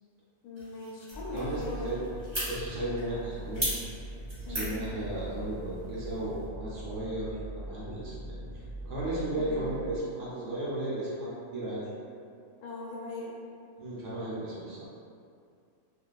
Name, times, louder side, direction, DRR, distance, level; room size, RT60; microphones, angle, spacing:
voice 1, 0.4-1.9 4.4-4.8 9.3-9.6 12.6-13.4, left 2 dB, 90° left, -3 dB, 1.1 m, -40 dB
sound 1, 0.6-6.5, equal, 25° right, 0.8 m, -39 dB
sound 2, 1.1-10.0, right 1 dB, 10° left, 0.6 m, -42 dB
voice 2, 1.3-2.2 2.4-3.7 4.5-11.8 13.8-14.8, right 1 dB, 65° right, -8 dB, 0.9 m, -35 dB
2.6 x 2.2 x 2.2 m, 2.3 s
omnidirectional pair, 1.6 m